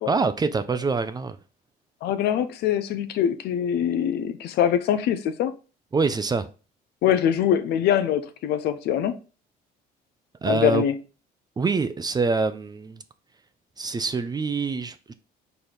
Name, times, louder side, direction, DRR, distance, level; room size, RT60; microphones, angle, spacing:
voice 1, 0.1-1.4 5.9-6.5 10.4-10.9 11.6-13.0 13.8-15.1, right 4 dB, 25° right, 0.5 m, -25 dB
voice 2, 2.0-5.5 7.0-9.1 10.4-10.9, left 9 dB, 75° left, 0.7 m, -23 dB
4.5 x 4.1 x 5.1 m
cardioid pair, 110°, 17 cm